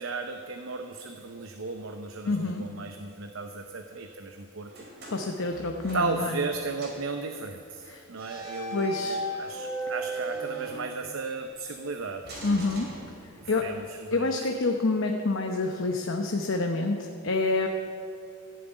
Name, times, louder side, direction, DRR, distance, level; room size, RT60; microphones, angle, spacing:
voice 1, 0.0-4.9 5.9-12.3 13.4-14.5, right 4 dB, 75° right, 6 dB, 0.8 m, -35 dB
voice 2, 2.3-2.6 5.1-6.3 8.7-9.2 12.4-12.9 13.5-13.6 14.1-17.7, left 3 dB, 65° left, 3 dB, 0.9 m, -27 dB
sound 1, 4.7-6.5 6.8-7.1 8.1-11.3 12.2-13.6, right 1 dB, 55° right, 4.1 m, -37 dB
14.5 x 7.6 x 9.3 m, 2.7 s
head